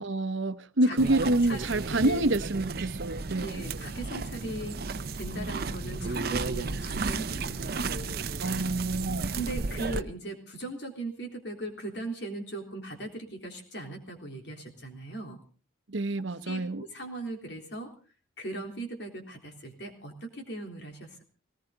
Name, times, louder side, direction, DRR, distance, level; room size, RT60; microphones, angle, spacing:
voice 1, 0.0-3.7 8.4-9.4 15.9-16.8, right 2 dB, 75° right, 0.9 m, -27 dB
sound 1, 1.0-10.0, right 3 dB, 50° right, 0.8 m, -33 dB
voice 2, 1.4-2.2 3.4-4.8 5.1-8.1 9.3-15.4 16.5-17.9 18.4-21.2, right 1 dB, 60° left, 3.6 m, -39 dB
19.0 x 18.5 x 3.9 m
head